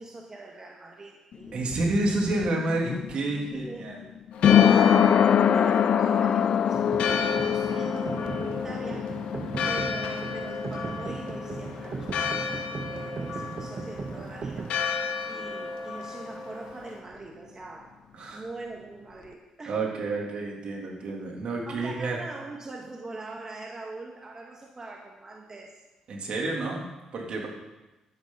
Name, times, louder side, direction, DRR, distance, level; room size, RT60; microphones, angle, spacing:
voice 1, 0.0-1.7 3.5-4.0 4.4-9.1 9.6-14.7 15.3-18.0 18.3-19.8 21.7-25.7, right 3 dB, 30° right, -1 dB, 1.9 m, -42 dB
sound 1, 1.3-12.9 13.1-13.2, left 8 dB, 60° left, 0.5 m, -24 dB
voice 2, 1.5-4.0 18.1-18.4 19.7-22.2 26.1-27.5, right 2 dB, 60° right, -1 dB, 3.3 m, -29 dB
Church bell, 4.3-17.0, left 5 dB, 80° left, 1.9 m, -34 dB
sound 2, 6.7-14.7, right 5 dB, 45° right, 0.8 m, -38 dB
12.0 x 10.5 x 4.1 m, 1.0 s
supercardioid pair, 65°, 2 cm